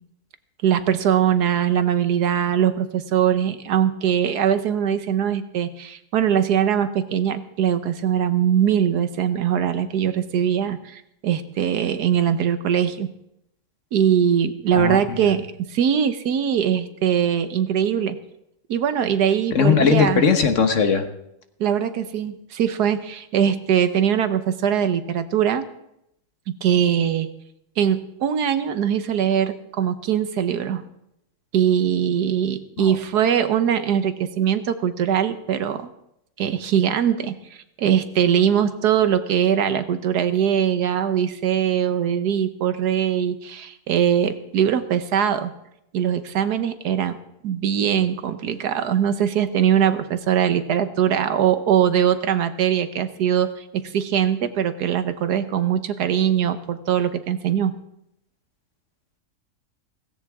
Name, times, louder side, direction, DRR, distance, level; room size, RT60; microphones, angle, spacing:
voice 1, 0.6-13.1 13.9-18.2 18.7-20.2 21.6-25.7 26.6-27.3 27.8-30.8 31.5-35.9 36.4-37.3 37.8-45.5 45.9-47.2 47.4-57.7, right 9 dB, 90° right, 10 dB, 1.5 m, -21 dB
voice 2, 14.8-15.2 19.5-21.1 32.8-32.9, left 6 dB, 55° left, 6 dB, 1.5 m, -19 dB
17.0 x 16.0 x 3.6 m, 0.80 s
omnidirectional pair, 1.7 m